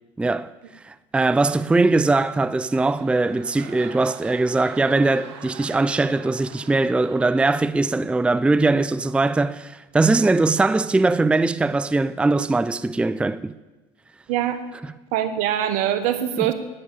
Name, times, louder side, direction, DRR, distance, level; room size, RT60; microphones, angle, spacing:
voice 1, 0.2-0.5 0.8-13.5 16.4-16.5, right 3 dB, 10° right, 0.4 m, -21 dB
sound 1, 2.2-8.2 8.5-8.9, right 8 dB, 90° right, 1.1 m, -44 dB
voice 2, 15.1-16.5, right 11 dB, 70° right, 1.4 m, -23 dB
13.0 x 9.7 x 7.3 m
supercardioid pair, 90°, 14 cm